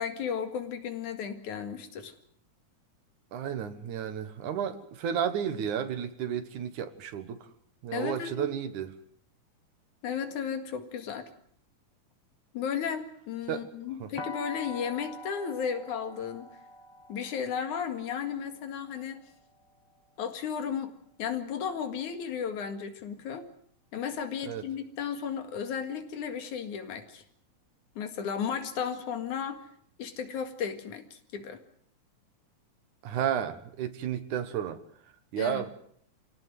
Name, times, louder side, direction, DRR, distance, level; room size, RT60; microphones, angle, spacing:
voice 1, 0.0-2.1 7.9-8.5 10.0-11.3 12.5-16.5 17.1-19.2 20.2-23.4 23.9-27.2 28.0-29.7 30.0-31.6 35.4-35.6, left 7 dB, 80° left, 7 dB, 3.5 m, -34 dB
voice 2, 3.3-7.5 7.8-8.9 13.5-13.6 14.0-14.1 24.5-24.6 33.0-34.8 35.3-35.7, right 9 dB, 80° right, 11 dB, 3.0 m, -32 dB
sound 1, 14.2-20.0, left 2 dB, 35° left, 0.4 m, -45 dB
26.0 x 17.5 x 7.7 m, 0.64 s
omnidirectional pair, 3.4 m